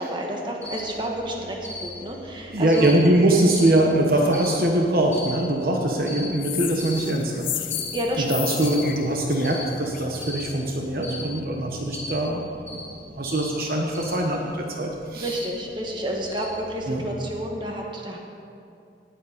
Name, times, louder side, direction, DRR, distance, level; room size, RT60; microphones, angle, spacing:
voice 1, 0.0-3.0 7.9-8.3 15.1-18.2, right 1 dB, 25° right, 0 dB, 1.5 m, -30 dB
Cricket, 0.6-17.4, left 2 dB, 10° left, 3.2 m, -40 dB
voice 2, 2.5-7.7 8.2-15.4 16.9-17.1, right 1 dB, 55° right, 1 dB, 1.1 m, -23 dB
sound 1, 6.4-10.2, left 13 dB, 50° left, 0.5 m, -33 dB
18.0 x 7.6 x 5.2 m, 2.5 s
head